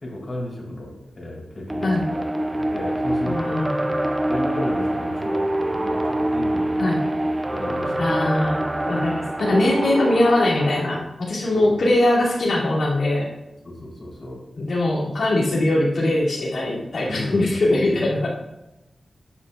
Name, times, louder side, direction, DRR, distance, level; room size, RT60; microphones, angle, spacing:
voice 1, 0.0-3.7 4.3-7.0 7.5-8.2 11.5-11.7 13.6-14.4 17.1-18.0, left 1 dB, 35° left, -4 dB, 3.6 m, -33 dB
sound 1, 1.7-11.0, right 1 dB, 15° right, 0.6 m, -25 dB
voice 2, 3.2-3.7 6.8-7.0 8.0-13.3 14.6-18.3, left 1 dB, 75° left, -7 dB, 2.8 m, -21 dB
13.5 x 9.6 x 2.5 m, 0.95 s
wide cardioid pair, 145°, 0 cm